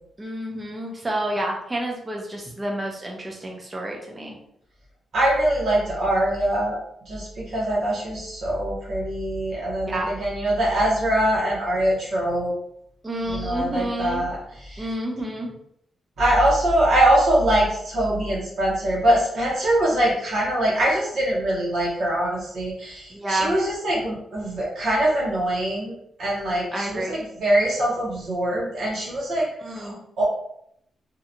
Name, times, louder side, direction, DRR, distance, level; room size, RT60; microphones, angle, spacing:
voice 1, 0.2-4.4 9.9-10.1 13.0-14.2 14.8-15.5 23.1-23.6 26.7-27.2 29.6-30.0, right 1 dB, 15° right, 0 dB, 0.5 m, -29 dB
voice 2, 5.1-6.8 7.1-12.5 13.2-14.9 16.2-30.3, right 1 dB, 55° right, -4 dB, 0.8 m, -23 dB
2.8 x 2.2 x 2.5 m, 0.72 s
wide cardioid pair, 180°, 0 cm